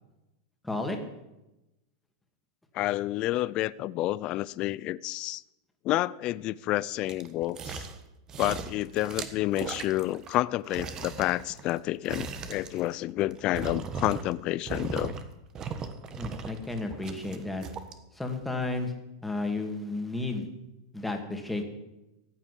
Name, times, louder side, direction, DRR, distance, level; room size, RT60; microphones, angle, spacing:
voice 1, 0.6-1.0 16.2-17.6 18.2-18.9 19.2-20.5 20.9-21.6, left 2 dB, 5° left, 4 dB, 2.3 m, -32 dB
voice 2, 2.7-5.4 5.8-7.9 8.4-15.2, left 16 dB, 40° left, 20 dB, 0.4 m, -29 dB
sound 1, 7.1-8.0 8.3-10.4 10.7-14.4 14.7-15.2 15.5-17.9 18.4-18.5, right 5 dB, 30° right, 1.4 m, -38 dB
15.0 x 7.5 x 10.0 m, 0.97 s
supercardioid pair, 130°, 2 cm